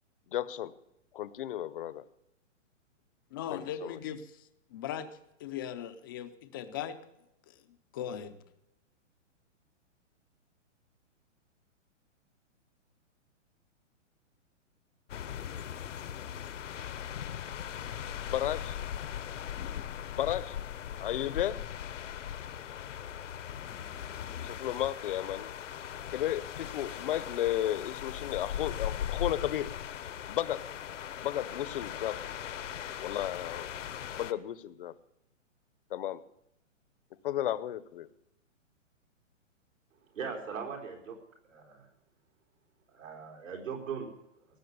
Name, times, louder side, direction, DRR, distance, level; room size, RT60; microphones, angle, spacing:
voice 1, 0.3-0.7 1.1-2.0 3.5-4.0 18.2-18.8 20.1-20.6 21.0-21.6 24.4-25.5 26.1-29.7 30.3-30.6 31.2-32.3 33.0-33.7 34.2-34.9 35.9-36.2 37.2-38.1, left 12 dB, 45° left, 16 dB, 0.8 m, -33 dB
voice 2, 3.3-4.2 4.7-7.0 7.5-7.6 7.9-8.4, left 9 dB, 20° left, 10 dB, 0.5 m, -38 dB
sound 1, 15.1-34.3, left 9 dB, 70° left, 1.1 m, -39 dB
voice 3, 40.1-41.2 41.5-41.9 42.9-44.1, right 6 dB, 80° right, 1 dB, 4.3 m, -39 dB
18.0 x 7.5 x 9.4 m, 0.85 s
hypercardioid pair, 160°, 38 cm